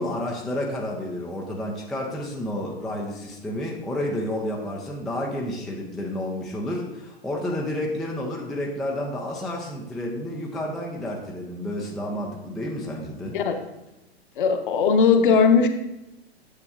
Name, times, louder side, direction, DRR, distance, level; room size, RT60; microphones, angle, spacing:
voice 1, 0.0-13.4, left 1 dB, ahead, -2 dB, 0.3 m, -30 dB
voice 2, 14.4-15.7, left 5 dB, 50° left, 6 dB, 0.9 m, -18 dB
9.8 x 6.8 x 2.4 m, 0.94 s
figure-of-eight pair, 105°, 32 cm